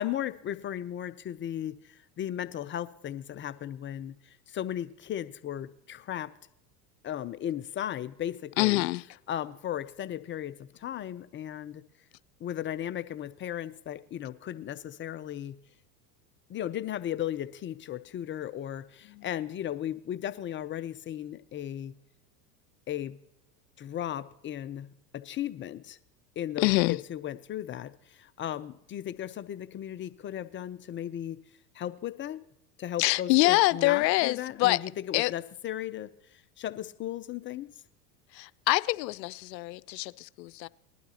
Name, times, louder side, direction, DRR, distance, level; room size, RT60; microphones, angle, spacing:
voice 1, 0.0-6.3 7.0-8.8 9.3-11.8 12.4-15.6 16.5-21.9 22.9-23.2 23.8-24.9 25.1-26.0 26.4-31.4 31.7-32.4 32.8-37.7, left 11 dB, 25° left, 0.4 m, -36 dB
voice 2, 8.6-9.0 19.1-19.3 26.6-27.0 33.0-34.8 35.1-35.3 38.3-40.7, left 20 dB, 80° left, 0.5 m, -25 dB
20.0 x 12.0 x 2.8 m
hypercardioid pair, 95°, 50 cm